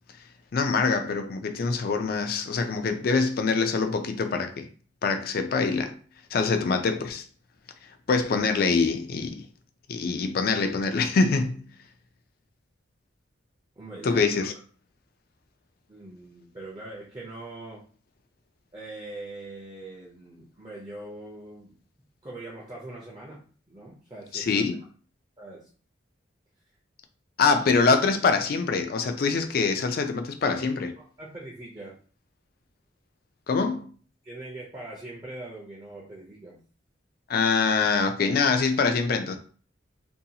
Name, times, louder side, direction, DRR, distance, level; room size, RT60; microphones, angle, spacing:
voice 1, 0.5-4.7 5.0-6.0 6.3-7.2 8.1-9.4 9.9-11.6 14.0-14.5 24.3-24.8 27.4-30.9 33.5-33.9 37.3-39.4, left 4 dB, 50° left, 0.3 m, -24 dB
voice 2, 13.8-14.2 15.9-17.8 18.7-21.7 22.2-23.4 23.7-24.6 25.4-25.7 30.5-30.6 31.0-31.9 34.2-36.6, right 2 dB, 20° right, 0.5 m, -42 dB
2.6 x 2.2 x 2.7 m
head